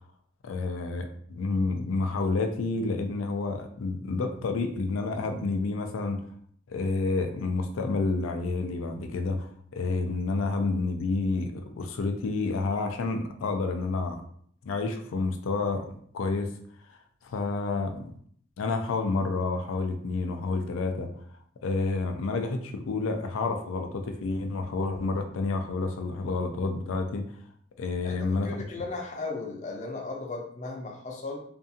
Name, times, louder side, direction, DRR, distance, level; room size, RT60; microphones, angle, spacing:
voice 1, 0.4-6.2 6.7-14.2 14.6-16.5 17.2-18.1 18.6-21.1 21.6-27.3 27.8-28.6, left 3 dB, 85° left, 6 dB, 0.4 m, -29 dB
voice 2, 28.0-31.4, left 3 dB, 40° left, 0 dB, 0.5 m, -36 dB
2.6 x 2.4 x 2.6 m, 0.62 s
head